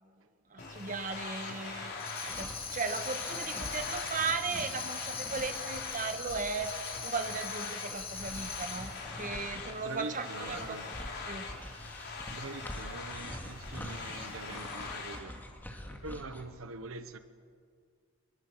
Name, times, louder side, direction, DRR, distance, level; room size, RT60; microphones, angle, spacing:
voice 1, 0.5-1.9 2.2-10.9 11.3-11.4, right 4 dB, 40° right, 1.4 m, -37 dB
sound 1, 0.6-15.2, left 4 dB, 55° left, 4.0 m, -42 dB
sound 2, 1.9-16.4, left 1 dB, 10° left, 2.5 m, -46 dB
Tambourine, 2.0-9.1, left 6 dB, 30° left, 2.6 m, -41 dB
voice 2, 9.8-10.9 12.3-15.4 15.9-17.2, right 3 dB, 85° right, 1.2 m, -43 dB
25.5 x 21.5 x 7.5 m
head